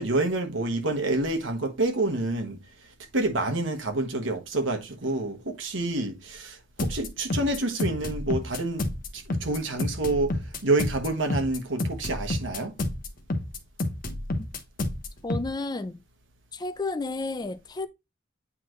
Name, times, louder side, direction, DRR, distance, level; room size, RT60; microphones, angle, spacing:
voice 1, 0.0-2.6 3.1-8.9 9.1-10.4 10.6-12.7, right 2 dB, 85° right, 1.3 m, -28 dB
sound 1, 6.8-15.5, left 1 dB, 45° left, 1.0 m, -30 dB
voice 2, 15.2-16.0 16.5-17.9, left 3 dB, 20° left, 0.4 m, -31 dB
8.6 x 3.9 x 3.1 m
head